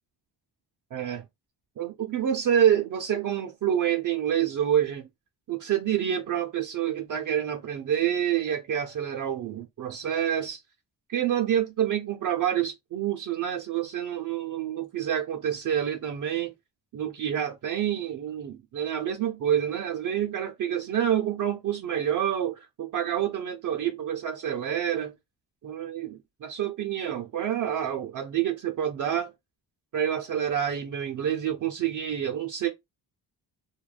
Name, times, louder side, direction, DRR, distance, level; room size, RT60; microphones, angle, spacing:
voice 1, 0.9-1.2 1.8-5.1 5.5-10.6 11.1-16.5 16.9-25.1 25.6-29.3 29.9-32.7, right 9 dB, 50° right, 0.5 m, -28 dB
2.3 x 2.1 x 3.2 m
wide cardioid pair, 135°, 41 cm